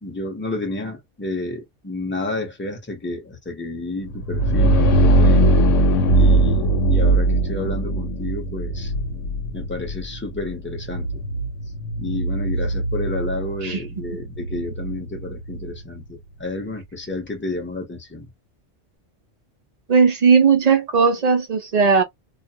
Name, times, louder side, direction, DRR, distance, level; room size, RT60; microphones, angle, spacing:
voice 1, 0.0-5.5 6.1-8.9 9.5-11.2 12.0-18.3, left 2 dB, 10° left, 0.6 m, -30 dB
sound 1, 4.1-15.7, right 1 dB, 75° left, 1.0 m, -20 dB
voice 2, 19.9-22.0, right 5 dB, 45° right, 0.5 m, -17 dB
2.4 x 2.1 x 2.7 m
omnidirectional pair, 1.3 m